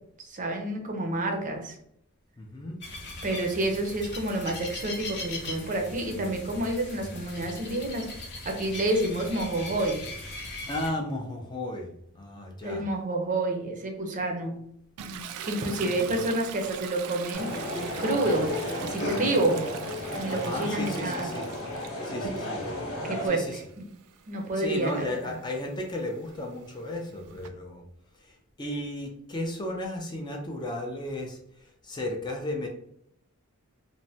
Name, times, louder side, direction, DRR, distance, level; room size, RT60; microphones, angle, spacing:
voice 1, 0.3-1.8 3.2-10.0 12.6-14.6 15.4-17.7 18.0-19.6 20.1-21.3 23.0-23.9 24.3-25.3, right 2 dB, 35° right, 2 dB, 0.5 m, -29 dB
voice 2, 2.4-2.8 10.7-12.8 15.6-16.2 19.1-19.5 20.3-21.5 22.0-22.6 23.2-23.6 24.5-27.8 28.2-32.7, left 1 dB, 20° left, 1 dB, 0.4 m, -35 dB
sound 1, 2.8-10.9, left 2 dB, 50° left, 0.7 m, -39 dB
Toilet flush, 15.0-22.8 23.2-27.5, right 7 dB, 90° right, 0.3 m, -42 dB
sound 2, 17.3-23.3, left 1 dB, 80° left, 1.1 m, -33 dB
3.1 x 2.1 x 2.7 m, 0.73 s
head